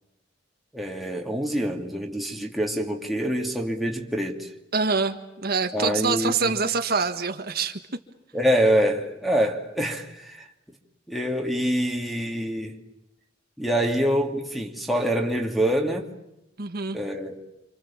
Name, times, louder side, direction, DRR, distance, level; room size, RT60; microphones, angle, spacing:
voice 1, 0.7-4.5 5.7-6.5 8.3-10.4 11.1-12.8 13.6-16.1 16.9-17.4, equal, ahead, 2.8 m, -25 dB
voice 2, 4.7-7.8 16.6-17.0, right 4 dB, 55° right, 1.6 m, -25 dB
28.0 x 27.5 x 7.3 m
head